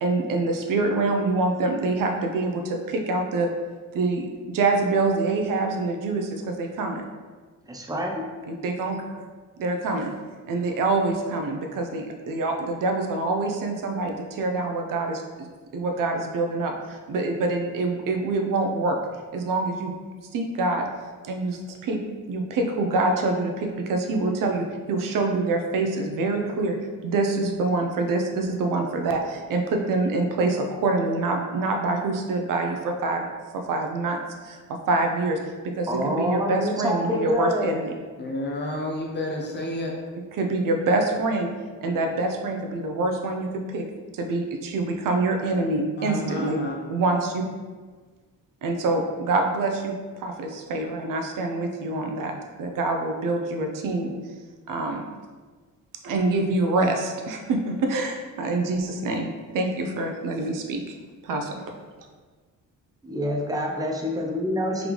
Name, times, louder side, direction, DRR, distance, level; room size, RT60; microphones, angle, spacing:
voice 1, 0.0-3.5 3.9-7.0 8.5-9.2 9.6-10.1 10.5-19.0 19.3-19.9 20.3-20.9 21.2-22.0 22.3-26.8 27.0-33.3 33.5-34.2 34.4-35.4 35.6-37.9 40.4-41.5 41.8-43.8 44.1-46.6 46.9-47.4 48.6-52.3 52.6-54.1 54.7-55.0 56.0-61.0 61.2-61.7, right 2 dB, 80° right, 3 dB, 0.6 m, -26 dB
voice 2, 7.7-8.2 35.9-37.7 63.0-64.9, equal, 10° right, 0 dB, 0.5 m, -27 dB
voice 3, 38.2-40.0 46.0-46.8, left 1 dB, 35° left, 0 dB, 0.7 m, -30 dB
3.8 x 3.4 x 3.0 m, 1.4 s
cardioid pair, 120°, 32 cm